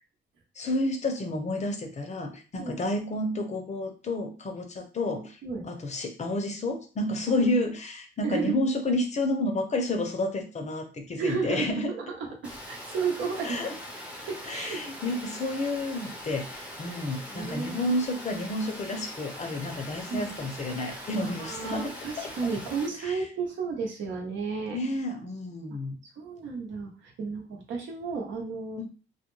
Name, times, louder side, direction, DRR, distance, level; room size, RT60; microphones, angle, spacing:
voice 1, 0.6-11.9 13.4-13.7 14.5-21.9 22.2-22.3 23.0-23.1 24.7-25.9 28.8-28.9, left 1 dB, 35° left, 5 dB, 0.6 m, -30 dB
voice 2, 8.2-8.6 11.2-13.6 14.3-14.8 17.2-18.0 20.1-20.3 20.9-24.8 26.2-28.8, right 5 dB, 75° right, 0 dB, 0.8 m, -33 dB
Water, 12.4-22.9, equal, 5° right, 0.6 m, -42 dB
2.3 x 2.2 x 3.0 m, 0.36 s
cardioid pair, 90°, 20 cm